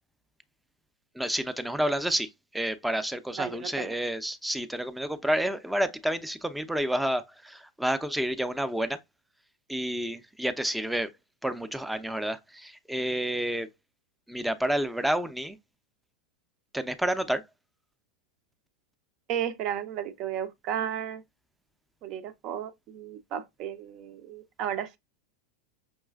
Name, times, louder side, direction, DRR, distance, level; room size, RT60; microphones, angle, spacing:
voice 1, 1.1-9.0 9.7-11.1 11.4-13.7 14.3-15.6 16.7-17.4, right 1 dB, 5° right, 0.5 m, -29 dB
voice 2, 3.3-3.9 19.3-21.2 22.0-24.9, right 9 dB, 50° right, 0.6 m, -34 dB
5.4 x 3.0 x 2.3 m
hypercardioid pair, 90°, 0 cm